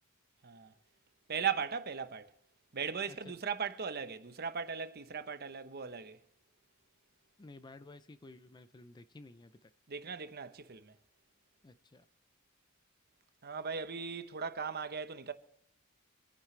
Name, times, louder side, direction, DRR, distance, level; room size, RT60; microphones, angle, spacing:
voice 1, 1.3-2.3 2.7-6.2 9.9-10.9 13.4-15.3, right 6 dB, 50° right, 0.9 m, -38 dB
voice 2, 3.1-3.4 7.4-9.7 11.6-12.1, left 2 dB, 20° left, 0.4 m, -53 dB
26.0 x 9.8 x 3.3 m
head